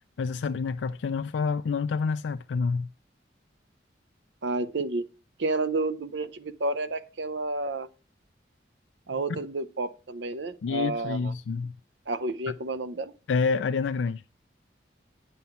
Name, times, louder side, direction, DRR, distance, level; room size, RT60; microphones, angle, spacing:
voice 1, 0.2-2.9 10.6-11.7 13.3-14.2, left 5 dB, 85° left, 0.4 m, -28 dB
voice 2, 4.4-5.1 5.4-7.9 9.1-11.3 12.1-13.1, right 2 dB, 75° right, 0.6 m, -30 dB
9.2 x 5.6 x 5.7 m
head